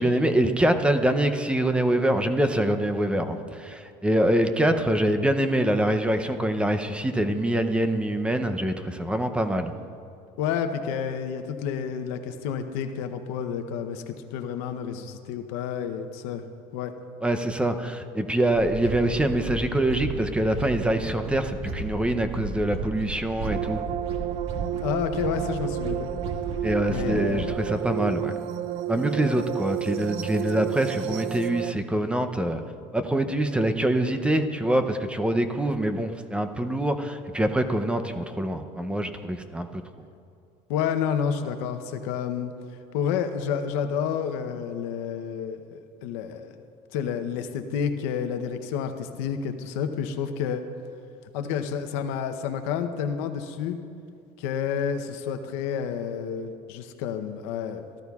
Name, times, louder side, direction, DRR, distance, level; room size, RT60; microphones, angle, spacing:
voice 1, 0.0-9.7 17.2-23.8 26.6-28.3 28.9-32.6 32.9-39.8, right 1 dB, 10° right, 7 dB, 0.6 m, -25 dB
voice 2, 10.4-16.4 16.7-16.9 24.8-26.1 26.9-27.6 40.7-42.5 42.9-46.6 46.9-50.6 51.3-53.8 54.4-57.8, left 7 dB, 90° left, 8 dB, 0.8 m, -30 dB
sound 1, 18.5-27.5, right 3 dB, 45° right, 1.6 m, -35 dB
sound 2, 23.5-31.7, right 12 dB, 85° right, 0.4 m, -31 dB
18.0 x 13.0 x 2.4 m, 2.5 s
cardioid pair, 120°, 13 cm